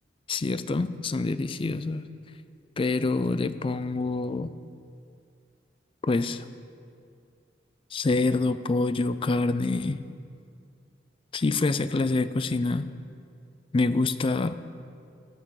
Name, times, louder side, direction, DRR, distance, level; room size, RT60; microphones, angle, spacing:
voice 1, 0.3-2.0 2.8-4.5 6.1-6.4 7.9-10.0 11.3-12.9 13.7-14.6, left 3 dB, 30° left, 13 dB, 0.4 m, -26 dB
13.5 x 9.0 x 4.7 m, 2.4 s
head